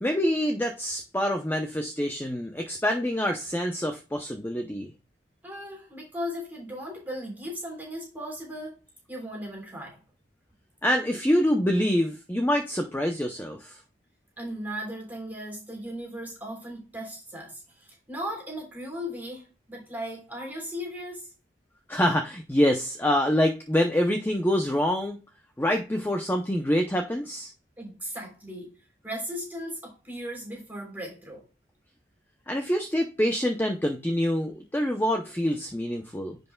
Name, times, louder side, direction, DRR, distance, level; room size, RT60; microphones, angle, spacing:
voice 1, 0.0-4.9 10.8-13.8 21.9-25.2 25.6-27.5 32.5-36.4, equal, 10° left, 0.6 m, -26 dB
voice 2, 5.4-8.7 9.1-10.0 14.4-21.3 27.8-28.7 29.0-31.4, equal, 10° right, 3.4 m, -37 dB
10.0 x 5.4 x 2.3 m
head